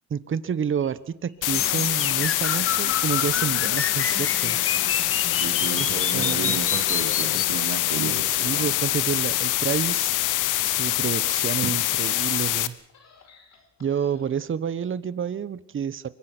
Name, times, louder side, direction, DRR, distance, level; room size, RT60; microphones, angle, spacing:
voice 1, 0.1-4.6 5.8-6.6 8.4-10.1 10.6-12.7 13.8-16.1, right 7 dB, 40° right, 15 dB, 1.2 m, -29 dB
sound 1, 0.8-2.9 3.3-5.5 5.8-9.2 9.5-12.4 12.8-14.5, left 5 dB, 60° left, 4.4 m, -53 dB
sound 2, 1.4-12.7, left 15 dB, 90° left, 1.0 m, -24 dB
sound 3, 1.5-7.5, left 6 dB, 45° left, 2.2 m, -30 dB
voice 2, 5.4-8.7, right 9 dB, 90° right, 5 dB, 3.3 m, -33 dB
24.0 x 23.0 x 6.1 m, 0.68 s
cardioid pair, 90°, 30 cm